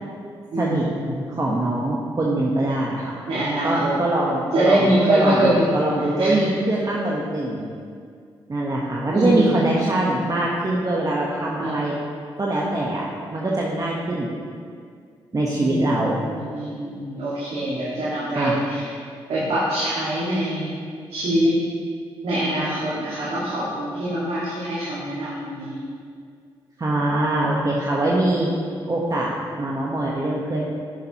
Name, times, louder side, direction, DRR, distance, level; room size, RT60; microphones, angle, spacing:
voice 1, 0.5-1.4 3.3-3.9 4.5-5.7 6.2-6.3 9.1-9.7 11.6-11.7 15.6-18.9 19.3-20.7 21.1-21.5 22.2-25.8, right 1 dB, 75° right, -10 dB, 1.8 m, -24 dB
voice 2, 1.3-3.1 3.6-7.7 8.5-11.9 12.4-13.0 13.3-14.3 15.3-16.2 18.3-18.6 26.8-28.5 28.9-30.6, right 1 dB, 35° right, -4 dB, 1.1 m, -23 dB
10.0 x 6.7 x 3.0 m, 2.1 s
supercardioid pair, 45°, 10 cm